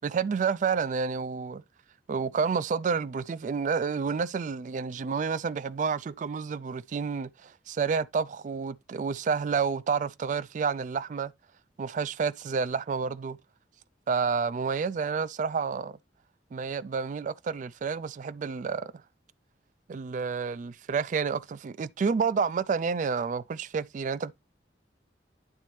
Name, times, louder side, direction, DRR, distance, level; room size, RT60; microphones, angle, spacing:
voice 1, 0.0-1.6 2.1-11.3 11.8-13.4 14.1-16.0 16.5-18.9 19.9-24.3, right 5 dB, 45° right, 0.3 m, -29 dB
10.5 x 4.1 x 3.1 m
head